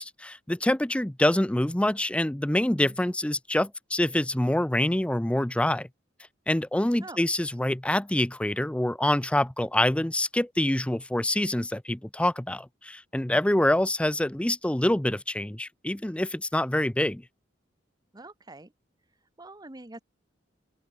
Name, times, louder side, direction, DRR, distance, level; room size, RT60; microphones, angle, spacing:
voice 1, 0.0-5.9 6.5-17.2, left 1 dB, 5° left, 0.5 m, -26 dB
voice 2, 18.1-18.7 19.4-20.0, right 2 dB, 20° right, 1.4 m, -45 dB
head